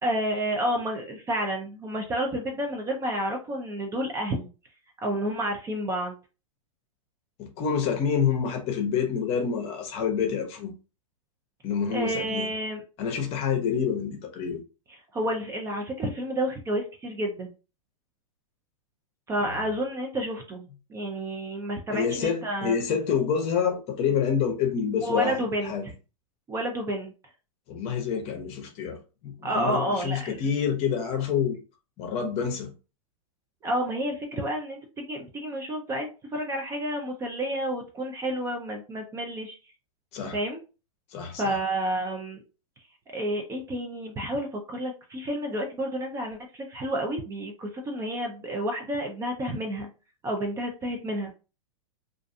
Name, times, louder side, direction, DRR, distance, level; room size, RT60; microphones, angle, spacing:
voice 1, 0.0-4.5 5.0-6.1 11.9-12.8 15.1-17.5 19.3-20.6 20.9-22.7 25.0-25.9 26.5-27.1 29.4-30.4 33.6-39.6 40.3-40.6 41.4-42.4 43.1-49.9 50.2-51.3, right 1 dB, 15° right, 0.4 m, -30 dB
voice 2, 7.4-10.7 11.6-12.5 13.0-14.6 21.9-25.4 25.6-25.8 27.7-29.0 29.2-31.6 32.0-32.7 40.1-40.4 41.1-41.6, left 7 dB, 35° left, 0.7 m, -27 dB
2.5 x 2.2 x 2.6 m
hypercardioid pair, 125°, 18 cm